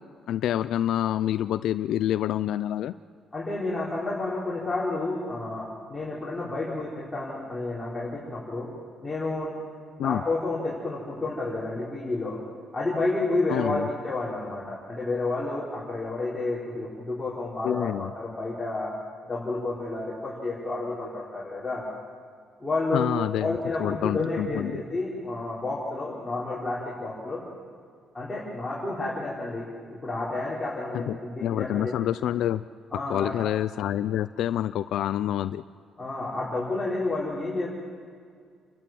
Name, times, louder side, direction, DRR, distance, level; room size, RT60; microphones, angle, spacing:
voice 1, 0.3-2.9 10.0-10.2 13.5-13.9 17.6-18.1 22.9-24.8 30.9-31.2 31.4-32.6 33.1-35.6, left 11 dB, 75° left, 12 dB, 0.4 m, -27 dB
voice 2, 3.3-8.7 9.0-9.5 10.0-12.4 12.7-18.9 19.2-21.8 22.6-23.1 23.4-27.4 28.1-31.9 32.9-33.3 36.0-37.7, left 2 dB, 10° left, -8 dB, 4.6 m, -30 dB
29.5 x 12.0 x 7.7 m, 2.1 s
cardioid pair, 140°, 0 cm